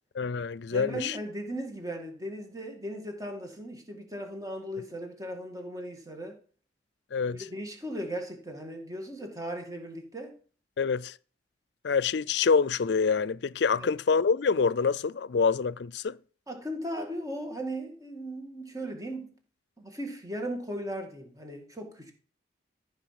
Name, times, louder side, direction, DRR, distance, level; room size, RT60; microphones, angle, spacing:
voice 1, 0.2-1.2 7.1-7.4 10.8-11.1 11.8-16.2, left 5 dB, 65° left, 0.4 m, -26 dB
voice 2, 0.7-6.4 7.3-10.3 13.7-13.9 16.5-19.4 19.8-22.1, right 1 dB, 20° right, 2.1 m, -37 dB
14.0 x 5.4 x 5.9 m
head